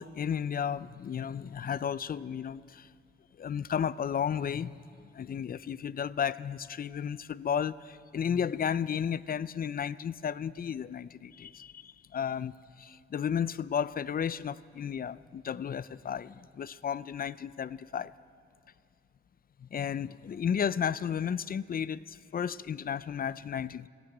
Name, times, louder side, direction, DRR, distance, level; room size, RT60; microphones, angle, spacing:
voice 1, 0.0-2.9 3.4-4.8 5.1-18.1 19.6-23.9, left 8 dB, 45° left, 0.4 m, -33 dB
18.5 x 15.5 x 9.0 m
wide cardioid pair, 135°, 21 cm